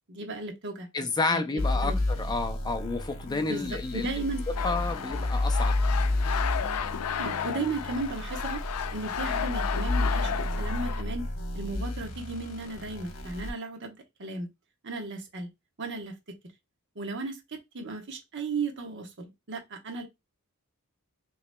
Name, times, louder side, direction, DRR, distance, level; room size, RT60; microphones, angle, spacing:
voice 1, 0.1-0.9 1.3-2.0 3.5-4.4 7.2-8.6 8.9-11.3 11.5-14.5 14.8-15.5 15.8-16.1 16.9-20.0, right 3 dB, 55° right, 1.1 m, -35 dB
voice 2, 0.9-4.1 4.6-5.8, left 3 dB, 20° left, 0.4 m, -30 dB
sound 1, 1.6-13.5, left 2 dB, 60° left, 1.1 m, -31 dB
sound 2, 4.6-11.0, left 8 dB, 85° left, 0.4 m, -33 dB
5.9 x 3.0 x 2.2 m
head